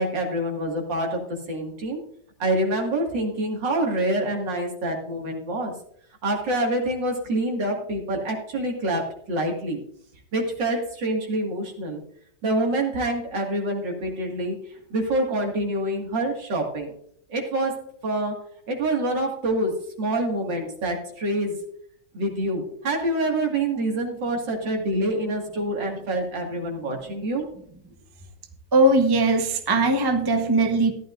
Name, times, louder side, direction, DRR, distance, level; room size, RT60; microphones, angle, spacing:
voice 1, 0.0-2.0 2.4-5.7 6.2-9.8 10.3-12.0 12.4-14.6 14.9-16.9 17.3-17.8 18.0-18.4 18.7-21.7 22.1-27.4, right 1 dB, 65° right, 1 dB, 2.7 m, -26 dB
voice 2, 28.7-30.9, right 2 dB, 20° right, 5 dB, 0.6 m, -20 dB
14.5 x 11.5 x 2.5 m, 0.65 s
omnidirectional pair, 2.2 m